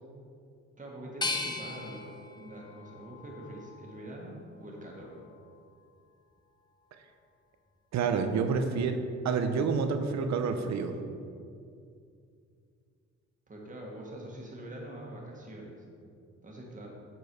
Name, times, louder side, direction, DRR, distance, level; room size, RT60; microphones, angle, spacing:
voice 1, 0.8-5.1 13.5-15.8 16.4-16.9, right 1 dB, 25° right, -2 dB, 1.7 m, -44 dB
sound 1, 1.2-4.1 4.7-5.5, left 3 dB, 15° left, 0.6 m, -39 dB
voice 2, 7.9-9.0 9.2-11.0, right 5 dB, 65° right, 8 dB, 0.7 m, -28 dB
7.6 x 4.6 x 4.7 m, 2.4 s
cardioid pair, 90°, 30 cm